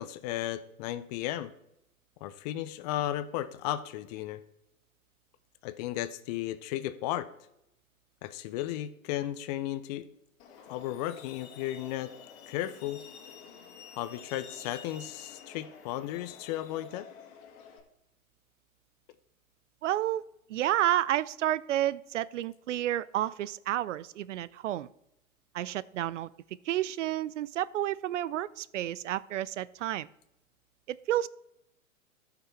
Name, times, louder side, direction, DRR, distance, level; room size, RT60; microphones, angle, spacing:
voice 1, 0.0-1.5 2.2-4.4 5.6-7.3 8.2-10.1 10.7-12.1 12.5-13.0 14.0-17.1, left 13 dB, 30° left, 13 dB, 0.5 m, -34 dB
Truck, 10.4-17.8, left 6 dB, 50° left, 2.1 m, -50 dB
voice 2, 19.8-20.2 20.5-24.9 25.5-26.3 26.7-30.1 30.9-31.3, right 13 dB, 60° right, 19 dB, 0.5 m, -30 dB
13.0 x 5.9 x 4.4 m, 0.82 s
hypercardioid pair, 110°, 42 cm